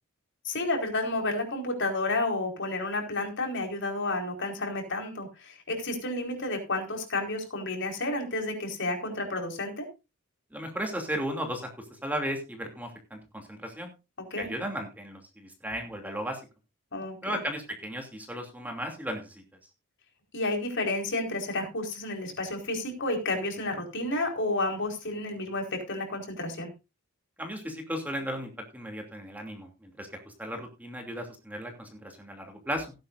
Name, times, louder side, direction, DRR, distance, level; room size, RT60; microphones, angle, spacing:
voice 1, 0.4-9.9 14.3-14.5 16.9-17.2 20.3-26.7, left 2 dB, 60° left, 3 dB, 4.6 m, -31 dB
voice 2, 10.5-13.9 14.4-16.4 17.2-19.4 27.4-32.9, equal, 10° right, 3 dB, 2.8 m, -35 dB
17.5 x 10.5 x 2.6 m, 0.28 s
head